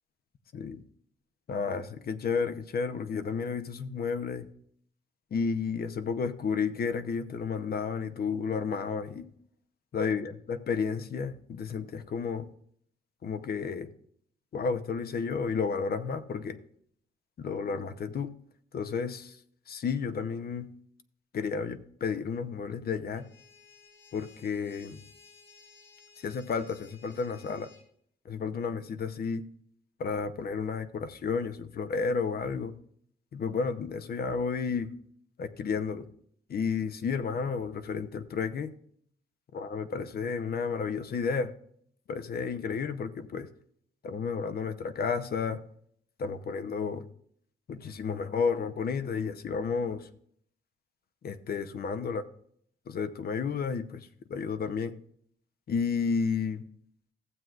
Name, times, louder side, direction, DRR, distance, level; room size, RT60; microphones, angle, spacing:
voice 1, 0.5-0.8 1.5-4.5 5.3-9.3 9.9-12.5 13.2-13.9 14.5-16.6 17.4-18.3 18.7-19.4 19.7-20.7 21.3-23.2 24.1-25.0 26.2-27.7 28.2-29.5 30.0-32.7 33.3-34.9 35.4-36.1 36.5-38.7 39.5-41.5 42.1-43.5 44.0-45.6 46.2-47.1 47.7-50.1 51.2-52.2 52.9-55.0 55.7-56.6, left 5 dB, 50° left, 11 dB, 0.8 m, -32 dB
sound 1, 23.1-27.9, left 5 dB, 90° left, 2.9 m, -57 dB
15.0 x 7.7 x 2.4 m, 0.63 s
cardioid pair, 90°, 20 cm